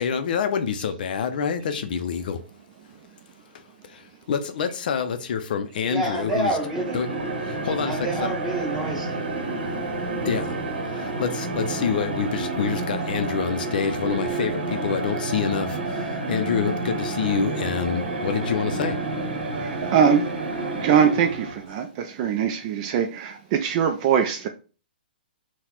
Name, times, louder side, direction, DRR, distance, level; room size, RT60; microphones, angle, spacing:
voice 1, 0.0-2.4 3.9-6.6 6.9-7.2 7.4-8.3 10.2-10.6 10.8-19.0, left 7 dB, 60° left, 0.4 m, -27 dB
voice 2, 5.8-7.0 7.8-9.2, right 2 dB, 10° right, 1.6 m, -28 dB
sound 1, 6.4-21.7, right 2 dB, 80° right, 0.8 m, -29 dB
voice 3, 19.5-20.3 20.7-24.5, right 7 dB, 40° right, 0.3 m, -22 dB
3.9 x 2.1 x 2.9 m
hypercardioid pair, 130°, 5 cm